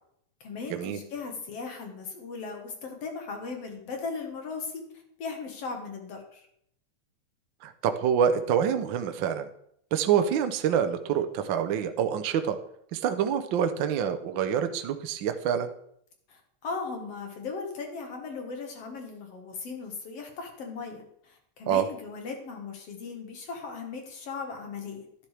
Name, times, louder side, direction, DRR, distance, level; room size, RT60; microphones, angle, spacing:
voice 1, 0.4-4.8 5.2-6.5 16.3-25.1, left 4 dB, 60° left, 3 dB, 2.4 m, -38 dB
voice 2, 7.6-9.5 9.9-12.6 12.9-15.7 21.7-21.9, right 8 dB, 85° right, 8 dB, 1.0 m, -26 dB
11.5 x 11.0 x 3.4 m, 0.71 s
omnidirectional pair, 3.3 m